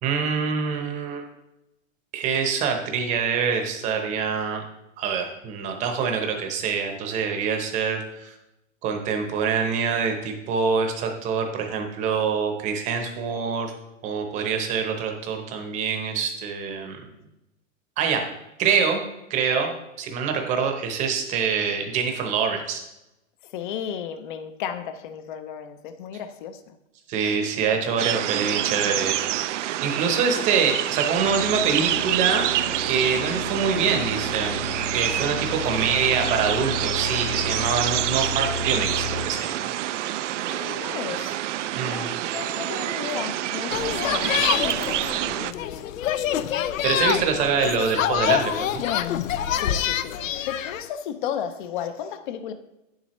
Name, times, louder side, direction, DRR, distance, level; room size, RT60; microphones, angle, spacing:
voice 1, 0.0-1.2 2.1-4.6 5.0-8.3 8.8-13.7 14.0-17.0 18.0-18.2 18.6-19.0 19.3-22.8 27.1-32.5 32.9-34.6 34.9-39.7 41.7-42.1 46.8-48.8, right 6 dB, 20° right, 0.9 m, -25 dB
voice 2, 23.4-26.8 27.2-27.4 35.8-36.0 40.5-41.4 41.8-45.9 49.5-50.2 50.5-52.5, left 8 dB, 40° left, 0.6 m, -34 dB
sound 1, 28.0-45.5, right 13 dB, 70° right, 0.5 m, -27 dB
sound 2, 31.1-39.3, left 4 dB, 70° left, 2.0 m, -34 dB
sound 3, 43.7-50.8, left 10 dB, 85° left, 0.6 m, -26 dB
9.4 x 7.5 x 3.1 m
hypercardioid pair, 160°, 39 cm